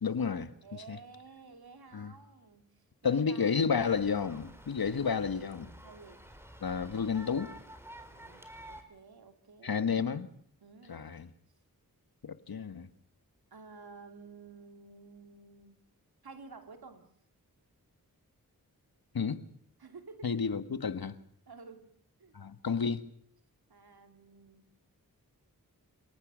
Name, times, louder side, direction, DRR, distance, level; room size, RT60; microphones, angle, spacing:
voice 1, 0.0-0.5 0.9-1.0 1.9-2.1 3.0-5.7 6.6-7.5 9.6-10.3 10.9-11.3 12.2-12.9 19.1-19.4 20.2-21.2 22.3-23.0, left 6 dB, 75° left, 1.6 m, -31 dB
voice 2, 0.6-3.8 4.8-5.0 5.8-6.3 8.1-10.0 10.6-11.1 13.5-15.8 16.2-17.1 19.8-20.5 21.5-21.9 22.2-22.4 23.7-24.8, right 4 dB, 85° right, 2.9 m, -52 dB
sound 1, 3.8-8.8, right 1 dB, 5° right, 4.2 m, -51 dB
28.0 x 18.5 x 6.3 m
wide cardioid pair, 60°, 37 cm